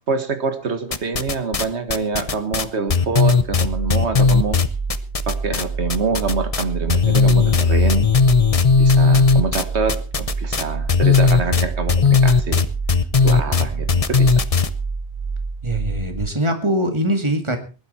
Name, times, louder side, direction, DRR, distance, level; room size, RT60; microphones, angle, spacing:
voice 1, 0.1-4.6 5.3-8.1 8.8-12.7 13.2-14.4, right 4 dB, 80° right, 9 dB, 1.9 m, -25 dB
sound 1, 0.9-1.6 1.9-5.6 5.9-6.6 6.9-14.7, left 5 dB, 35° left, 0.8 m, -16 dB
sound 2, 3.4-16.2, right 4 dB, 55° right, 6.8 m, -28 dB
voice 2, 15.6-17.6, right 1 dB, 25° right, 6 dB, 2.4 m, -22 dB
20.0 x 12.0 x 4.3 m, 0.34 s
omnidirectional pair, 1.1 m